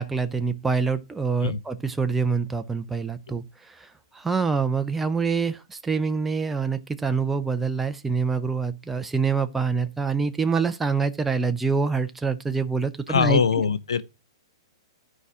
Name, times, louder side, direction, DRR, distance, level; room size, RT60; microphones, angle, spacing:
voice 1, 0.0-13.4, right 5 dB, 5° right, 0.6 m, -26 dB
voice 2, 13.1-14.0, left 6 dB, 80° left, 0.7 m, -22 dB
11.5 x 4.8 x 6.1 m
hypercardioid pair, 125°, 3 cm